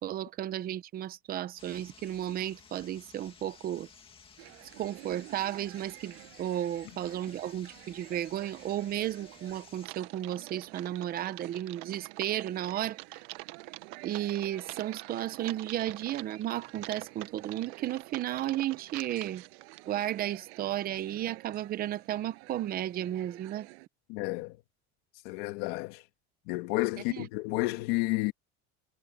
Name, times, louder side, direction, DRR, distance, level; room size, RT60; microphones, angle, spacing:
voice 1, 0.0-3.9 4.8-13.2 14.0-19.4 19.8-23.7 27.1-27.3, right 12 dB, 30° right, 0.8 m, -34 dB
sound 1, 1.6-9.9, left 6 dB, 15° left, 2.4 m, -56 dB
sound 2, 4.4-23.9, right 30 dB, 85° right, 7.5 m, -52 dB
Typing, 9.8-20.3, right 21 dB, 65° right, 1.1 m, -46 dB
voice 2, 24.1-24.6 25.2-26.0 26.5-28.3, left 22 dB, 75° left, 1.8 m, -31 dB
cardioid pair, 175°, 30 cm